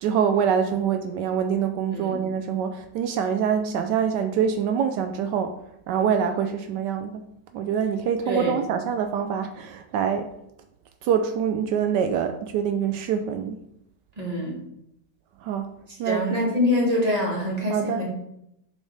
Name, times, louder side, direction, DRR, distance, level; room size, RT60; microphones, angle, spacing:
voice 1, 0.0-5.6 5.9-7.2 7.5-10.3 11.0-13.6 15.4-15.7 16.0-16.5 17.7-18.0, right 7 dB, 80° right, 7 dB, 1.2 m, -25 dB
voice 2, 14.2-14.6 16.1-18.1, left 1 dB, 20° right, -3 dB, 1.9 m, -25 dB
8.5 x 4.5 x 3.3 m, 0.79 s
omnidirectional pair, 1.8 m